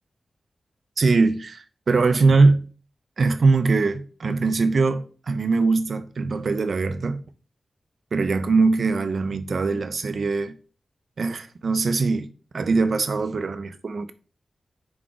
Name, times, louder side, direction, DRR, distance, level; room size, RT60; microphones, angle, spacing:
voice 1, 1.0-2.7 3.2-7.2 8.1-10.5 11.2-12.3 12.5-14.1, right 3 dB, 65° right, 0.4 m, -21 dB
4.6 x 2.4 x 3.8 m
wide cardioid pair, 90°, 0 cm